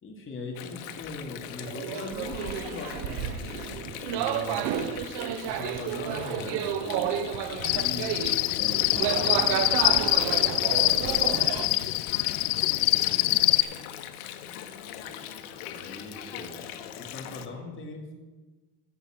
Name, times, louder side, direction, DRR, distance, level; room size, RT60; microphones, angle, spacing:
voice 1, 0.0-3.8 4.1-4.8 5.4-8.2 8.5-10.1 10.5-11.8 12.9-13.5 14.9-15.1 15.6-16.6 16.9-18.1, left 2 dB, 30° left, 0 dB, 2.5 m, -41 dB
Water, 0.5-17.5, left 10 dB, 90° left, 1.1 m, -41 dB
sound 1, 1.6-11.7, right 10 dB, 60° right, 1.1 m, -31 dB
Cricket, 7.6-13.6, left 19 dB, 75° left, 0.6 m, -24 dB
16.5 x 7.3 x 5.9 m, 1.3 s
cardioid pair, 130°, 43 cm